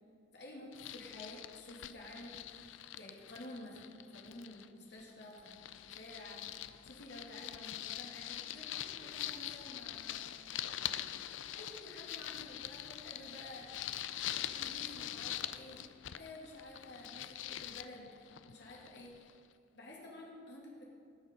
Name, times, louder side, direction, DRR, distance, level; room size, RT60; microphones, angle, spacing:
voice 1, 0.3-2.4 2.9-6.6 6.8-10.4 11.5-13.7 14.5-19.3 19.7-20.8, left 1 dB, 65° left, -3 dB, 2.5 m, -51 dB
sound 1, 0.7-4.7 5.0-19.4, left 12 dB, 90° left, 0.5 m, -44 dB
19.5 x 6.9 x 5.2 m, 2.5 s
head